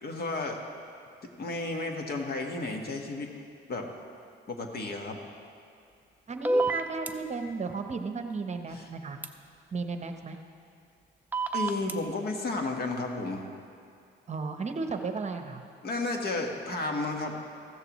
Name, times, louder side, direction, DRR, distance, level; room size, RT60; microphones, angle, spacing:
voice 1, 0.0-0.6 1.4-3.3 3.7-3.9 4.5-5.2 8.7-8.9 11.5-13.5 15.8-17.3, left 2 dB, 50° left, 2 dB, 1.5 m, -32 dB
voice 2, 6.3-9.2 9.7-10.4 14.3-15.6, right 4 dB, 35° right, 6 dB, 0.9 m, -34 dB
sound 1, 6.4-7.1 9.2-9.3 11.3-11.9, right 2 dB, 10° right, 0.7 m, -27 dB
15.0 x 13.5 x 3.1 m, 2.4 s
cardioid pair, 90°, 20 cm